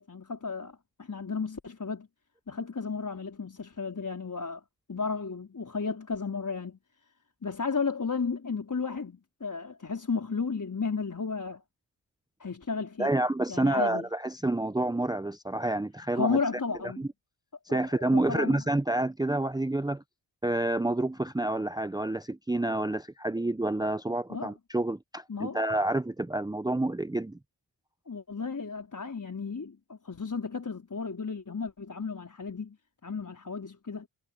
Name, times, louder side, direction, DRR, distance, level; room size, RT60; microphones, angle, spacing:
voice 1, 0.0-2.1 2.5-4.6 4.9-6.8 7.4-11.6 12.4-14.0 16.1-17.1 17.7-18.6 24.3-24.5 25.3-25.6 28.1-32.8 33.0-34.1, left 5 dB, 35° left, 4.5 m, -33 dB
voice 2, 13.0-16.4 16.8-17.1 17.7-20.0 20.4-27.4, right 1 dB, 10° right, 0.8 m, -28 dB
supercardioid pair, 45°, 49 cm